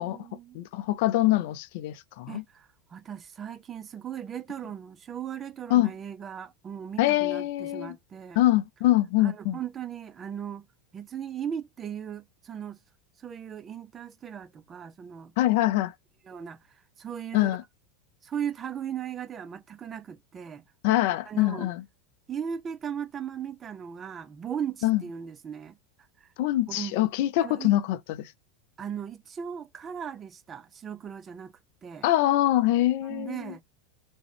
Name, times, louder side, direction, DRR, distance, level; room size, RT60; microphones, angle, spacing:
voice 1, 0.0-0.6 2.3-8.4 9.2-10.7 10.9-12.8 13.2-15.3 16.3-17.5 18.2-20.6 21.3-21.7 22.3-25.8 26.2-26.3 26.7-27.0 27.4-27.7 28.8-32.1 33.0-33.6, right 8 dB, 30° right, 0.4 m, -37 dB
voice 2, 0.5-2.4 5.7-5.9 7.0-8.0 8.4-9.6 15.4-15.9 17.3-17.6 20.8-21.8 24.8-25.0 26.4-28.3 32.0-33.5, left 15 dB, 60° left, 0.4 m, -24 dB
3.5 x 2.1 x 3.2 m
hypercardioid pair, 90°, 0 cm